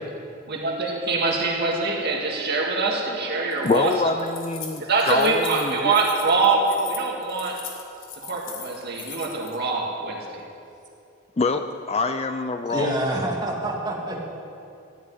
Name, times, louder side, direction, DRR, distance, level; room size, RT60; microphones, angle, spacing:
voice 1, 0.5-4.3 4.8-7.7 8.2-10.4, right 3 dB, 50° right, -1 dB, 2.1 m, -24 dB
Keys jangling, 3.5-9.6, left 7 dB, 60° left, 1.7 m, -40 dB
voice 2, 3.6-6.0 11.4-13.1, left 3 dB, 30° left, 8 dB, 0.5 m, -25 dB
voice 3, 12.7-14.2, right 1 dB, 20° right, -3 dB, 2.2 m, -27 dB
13.5 x 7.2 x 9.6 m, 2.6 s
head